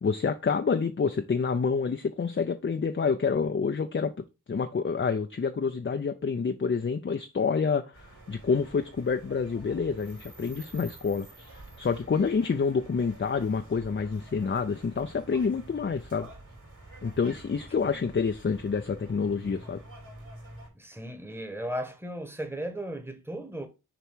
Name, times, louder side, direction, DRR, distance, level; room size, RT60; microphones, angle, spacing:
voice 1, 0.0-4.1 4.5-16.3 17.0-19.8, left 5 dB, 35° left, 0.5 m, -28 dB
sound 1, 7.9-20.7, right 1 dB, 55° right, 3.0 m, -48 dB
voice 2, 20.7-23.7, right 1 dB, 5° right, 1.2 m, -36 dB
6.8 x 3.0 x 4.6 m
cardioid pair, 45°, 36 cm